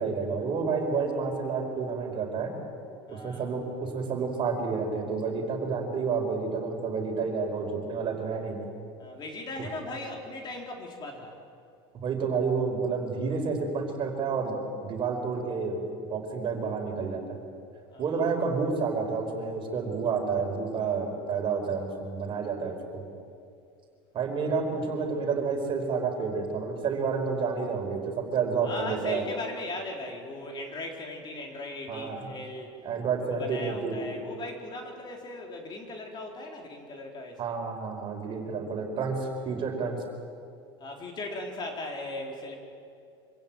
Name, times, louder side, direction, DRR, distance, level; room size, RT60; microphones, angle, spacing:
voice 1, 0.0-2.5 3.1-8.6 11.9-17.4 18.0-23.0 24.1-29.2 31.9-32.2 32.8-34.0 37.4-40.0, right 5 dB, 40° right, 3 dB, 4.9 m, -30 dB
voice 2, 3.1-3.5 9.0-11.3 17.9-18.3 24.4-24.6 28.6-32.7 33.4-37.5 40.8-42.5, left 2 dB, 35° left, 1 dB, 4.1 m, -38 dB
26.0 x 16.0 x 9.2 m, 2.4 s
supercardioid pair, 110°, 13 cm